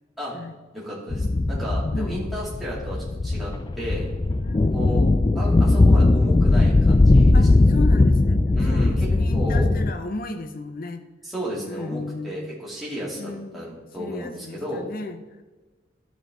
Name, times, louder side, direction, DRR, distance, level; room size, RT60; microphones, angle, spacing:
voice 1, 0.7-4.1 4.7-5.1 5.3-7.6 8.5-9.7 11.2-14.8, equal, ahead, -8 dB, 2.9 m, -33 dB
sound 1, 1.1-9.9, left 2 dB, 25° left, 0.3 m, -19 dB
voice 2, 1.9-2.3 4.4-4.9 7.3-11.0 11.6-12.5 13.2-13.6 14.0-15.4, left 2 dB, 50° left, 7 dB, 0.7 m, -35 dB
12.5 x 5.1 x 3.8 m, 1.2 s
head